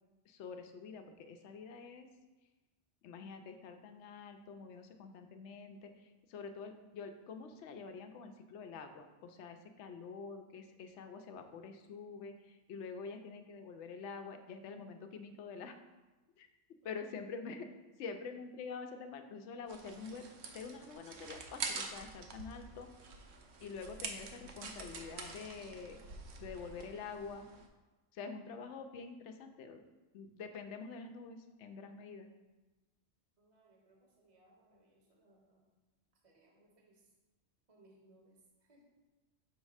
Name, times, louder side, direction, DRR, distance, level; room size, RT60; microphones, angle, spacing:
voice 1, 0.3-2.1 3.0-5.9 6.3-15.8 16.4-16.5 16.8-17.7 18.0-20.3 20.5-22.9 23.6-26.0 26.4-27.5 28.1-29.8 30.1-32.3, left 5 dB, 75° left, 7 dB, 0.9 m, -46 dB
sound 1, 19.7-27.7, right 4 dB, 70° right, 0.9 m, -46 dB
voice 2, 33.4-35.7 36.2-37.1 37.7-38.9, right 1 dB, 35° right, -1 dB, 0.8 m, -67 dB
6.2 x 3.1 x 4.8 m, 1.2 s
omnidirectional pair, 1.2 m